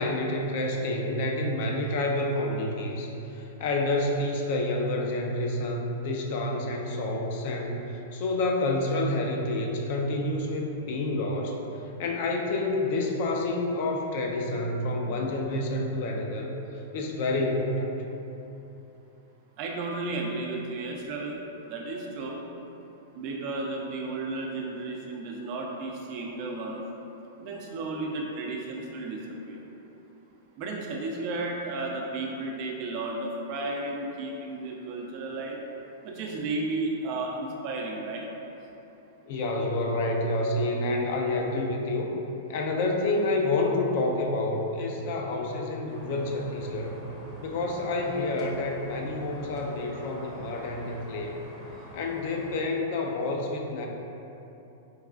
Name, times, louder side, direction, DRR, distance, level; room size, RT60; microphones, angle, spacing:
voice 1, 0.0-7.8 8.1-11.6 12.0-16.5 16.9-17.9 39.3-42.2 42.5-46.9 47.4-51.3 51.9-53.9, left 2 dB, 55° left, 1 dB, 0.4 m, -28 dB
voice 2, 19.6-21.4 21.7-22.5 23.1-26.8 27.4-29.6 30.6-35.6 36.0-38.3, right 2 dB, 45° right, 0 dB, 0.5 m, -33 dB
sound 1, 45.9-52.6, equal, 10° left, 0.7 m, -46 dB
4.7 x 2.3 x 2.4 m, 2.9 s
hypercardioid pair, 130°, 0 cm